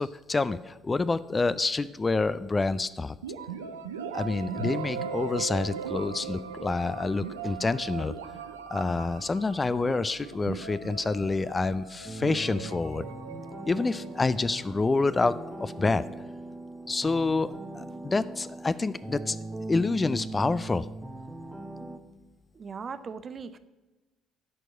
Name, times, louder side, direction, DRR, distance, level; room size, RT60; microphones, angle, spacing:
voice 1, 0.0-3.1 4.1-8.1 8.7-13.0 13.7-15.3 15.6-16.0 16.9-19.4 19.7-20.9, left 3 dB, 25° left, 15 dB, 0.4 m, -27 dB
sound 1, 3.2-14.9, right 6 dB, 80° right, 0.6 m, -39 dB
sound 2, 12.0-22.0, right 2 dB, 10° right, 1.0 m, -40 dB
voice 2, 22.6-23.6, right 5 dB, 40° right, 12 dB, 0.7 m, -38 dB
12.0 x 4.6 x 7.5 m, 1.2 s
figure-of-eight pair, 55°, 0 cm